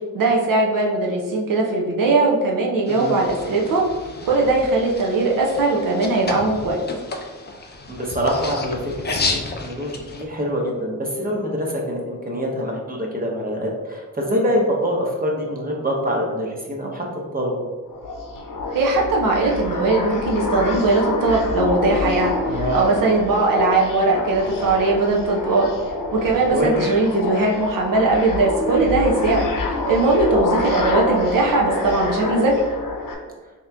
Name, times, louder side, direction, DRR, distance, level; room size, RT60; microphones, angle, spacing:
voice 1, 0.1-3.8 4.2-6.8 18.7-25.7 26.1-32.5, right 3 dB, 75° right, -1 dB, 0.7 m, -20 dB
sound 1, 2.9-10.2, left 3 dB, 30° left, 0.5 m, -32 dB
voice 2, 2.9-3.2 7.9-17.0 17.3-17.6 22.5-22.9 26.5-26.8, equal, 25° right, -1 dB, 0.8 m, -25 dB
sound 2, 17.9-33.1, left 2 dB, 75° left, 0.7 m, -27 dB
3.6 x 2.9 x 3.3 m, 1.3 s
wide cardioid pair, 110°, 33 cm